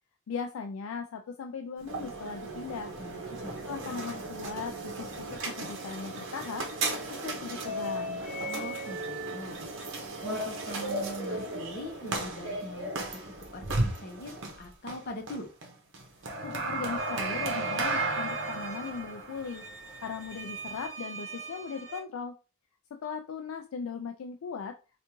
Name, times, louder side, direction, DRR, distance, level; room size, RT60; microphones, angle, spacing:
voice 1, 0.3-2.9 3.7-6.7 7.0-8.2 16.4-19.6 20.0-22.4 22.9-24.8, left 5 dB, 70° left, 5 dB, 0.3 m, -38 dB
sound 1, 1.8-20.9, right 2 dB, 55° right, 0.8 m, -35 dB
voice 2, 3.0-3.7 8.5-9.6 10.2-15.5, equal, 45° left, 2 dB, 0.8 m, -42 dB
sound 2, 17.0-22.0, right 6 dB, 20° right, 1.8 m, -42 dB
3.4 x 2.5 x 2.9 m, 0.32 s
head